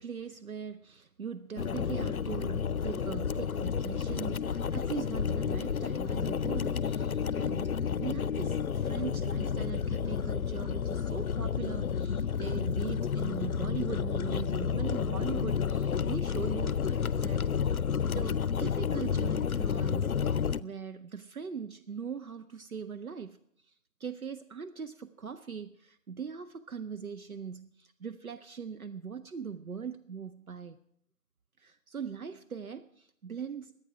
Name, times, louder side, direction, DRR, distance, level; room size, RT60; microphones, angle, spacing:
voice 1, 0.0-17.7 18.1-23.4 24.0-30.8 31.6-33.8, right 6 dB, 75° right, 10 dB, 0.8 m, -40 dB
sound 1, 1.6-20.6, left 7 dB, 80° left, 0.6 m, -31 dB
24.0 x 9.0 x 4.8 m, 0.73 s
figure-of-eight pair, 170°, 43 cm